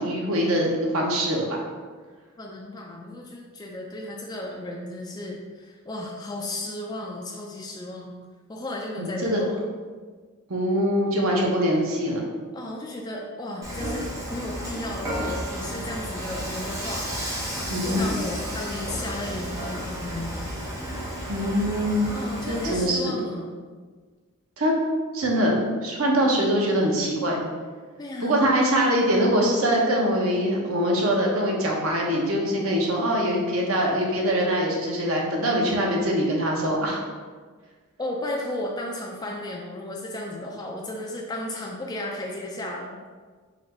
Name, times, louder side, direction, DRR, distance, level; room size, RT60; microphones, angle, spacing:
voice 1, 0.0-1.7 9.0-9.4 10.5-12.2 17.7-18.0 21.3-22.1 22.5-23.2 24.6-24.7 25.1-27.4 28.2-37.0, equal, 70° right, -1 dB, 0.9 m, -23 dB
voice 2, 2.4-8.1 8.5-9.6 12.5-17.1 17.8-20.4 22.1-23.5 28.0-28.7 38.0-43.0, left 1 dB, 20° left, -2 dB, 0.3 m, -34 dB
Dishes pots and pans / Frying (food), 13.6-22.8, equal, 15° right, 0.8 m, -32 dB
4.0 x 2.6 x 4.3 m, 1.5 s
head